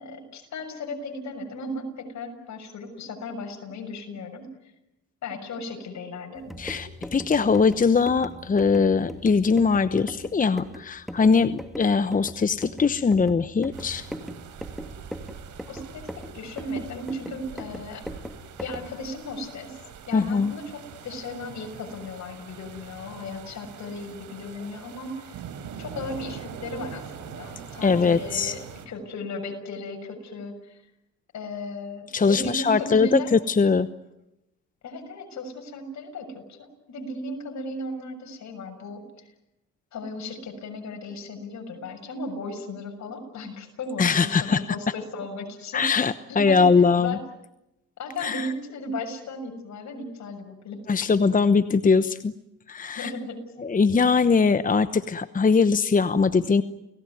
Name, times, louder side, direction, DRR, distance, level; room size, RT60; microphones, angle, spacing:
voice 1, 0.0-4.5 5.2-6.5 15.7-18.0 18.6-19.8 20.1-25.4 25.8-30.8 31.3-33.3 34.8-39.0 39.9-45.9 46.3-46.7 47.0-47.2 48.0-50.8 52.9-53.4, left 2 dB, 65° left, 5 dB, 6.7 m, -36 dB
sound 1, 6.4-19.0, equal, ahead, 2.8 m, -40 dB
voice 2, 6.6-14.1 20.1-20.5 27.8-28.5 32.1-33.9 44.0-44.8 45.7-47.2 48.2-48.5 50.9-52.3 52.7-53.1 53.6-56.6, left 5 dB, 25° left, 13 dB, 1.0 m, -21 dB
sound 2, 13.7-28.9, right 7 dB, 75° right, 4.0 m, -43 dB
29.5 x 18.5 x 9.5 m, 0.89 s
cardioid pair, 90°, 30 cm